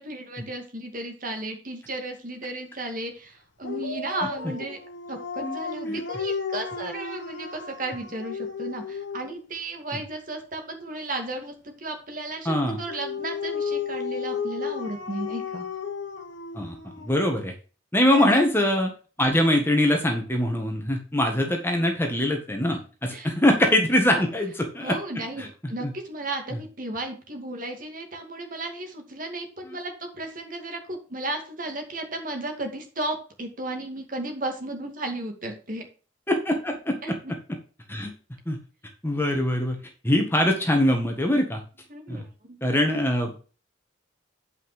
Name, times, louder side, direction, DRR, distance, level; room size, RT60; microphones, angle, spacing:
voice 1, 0.0-4.8 5.1-15.7 18.1-18.4 23.1-23.3 24.1-24.2 24.8-35.8 37.0-37.3 41.9-42.3, right 2 dB, 45° right, 4 dB, 2.2 m, -34 dB
Dog, 3.6-9.5 12.6-17.2, left 5 dB, 70° left, 1.3 m, -33 dB
voice 2, 12.4-12.8 16.5-16.7 17.0-17.5 17.9-18.9 19.2-24.9 25.8-25.9 36.3-37.2 37.9-38.1 38.5-38.6 39.0-39.8 40.0-41.6 42.1-42.2 42.6-43.3, left 1 dB, 10° left, 3 dB, 1.6 m, -23 dB
9.1 x 5.6 x 4.9 m, 0.35 s
head